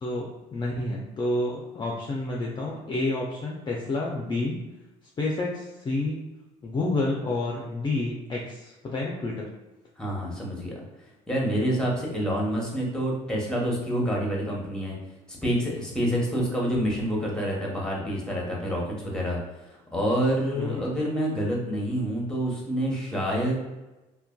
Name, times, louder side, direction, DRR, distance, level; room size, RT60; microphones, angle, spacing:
voice 1, 0.0-4.6 5.2-6.2 6.6-9.5 16.1-16.4 20.5-21.0, left 2 dB, 30° left, -2 dB, 0.4 m, -29 dB
voice 2, 10.0-10.8 11.3-15.0 15.3-19.4 19.7-23.6, equal, 5° left, -2 dB, 0.9 m, -27 dB
2.4 x 2.2 x 2.2 m, 1.0 s
supercardioid pair, 70°, 15 cm